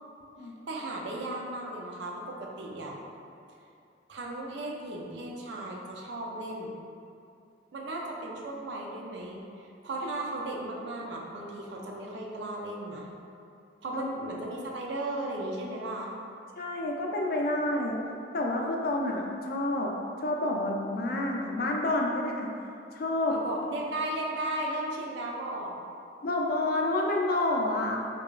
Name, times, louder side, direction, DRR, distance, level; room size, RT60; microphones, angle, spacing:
voice 1, 0.7-3.0 4.1-6.7 7.7-13.1 13.8-16.1 23.3-25.8, right 1 dB, 75° right, -1 dB, 0.5 m, -36 dB
voice 2, 16.6-18.0 18.3-19.9 20.2-22.5 22.9-23.4 26.2-28.0, left 2 dB, 55° left, 0 dB, 0.4 m, -29 dB
4.8 x 2.3 x 2.4 m, 2.6 s
head